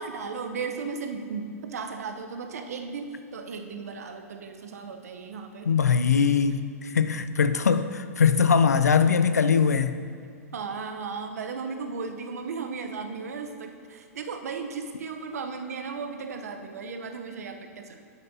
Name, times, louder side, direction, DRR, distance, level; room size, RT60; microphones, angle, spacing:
voice 1, 0.0-6.1 10.5-18.1, right 5 dB, 75° right, 6 dB, 0.8 m, -36 dB
voice 2, 5.7-10.0, left 6 dB, 90° left, 12 dB, 0.4 m, -21 dB
9.0 x 8.3 x 2.8 m, 2.3 s
hypercardioid pair, 115°, 8 cm